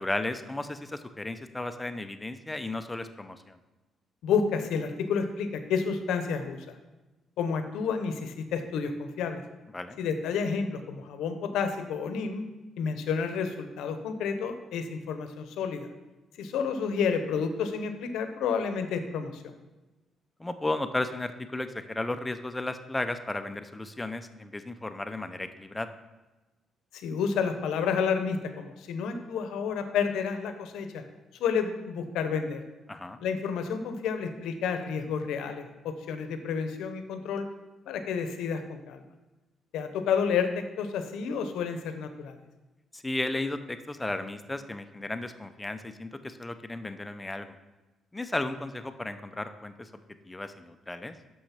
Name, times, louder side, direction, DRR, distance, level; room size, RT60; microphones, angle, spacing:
voice 1, 0.0-3.6 9.7-10.0 20.4-25.9 32.9-33.2 42.9-47.5 48.1-49.9 50.3-51.1, left 2 dB, 15° left, 9 dB, 0.6 m, -34 dB
voice 2, 4.2-6.7 7.4-9.4 10.0-12.4 12.8-15.9 16.4-19.5 26.9-31.0 31.4-32.6 33.2-37.5 37.9-39.0 39.7-42.4, left 6 dB, 85° left, 8 dB, 0.8 m, -30 dB
6.4 x 5.8 x 5.8 m, 1.1 s
cardioid pair, 90°, 0 cm